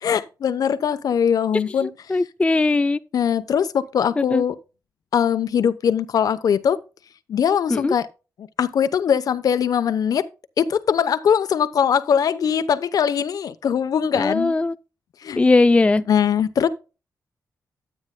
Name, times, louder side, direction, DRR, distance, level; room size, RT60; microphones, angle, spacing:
voice 1, 0.0-1.9 3.1-4.6 5.1-6.8 7.3-8.1 8.6-10.3 10.6-14.5 15.2-15.4 16.1-16.7, left 8 dB, 70° left, 0.8 m, -21 dB
voice 2, 1.8-3.0 4.3-4.4 7.7-7.9 14.1-14.8 15.4-16.0, left 3 dB, 20° left, 0.4 m, -19 dB
13.0 x 8.9 x 2.2 m
wide cardioid pair, 110°, 6 cm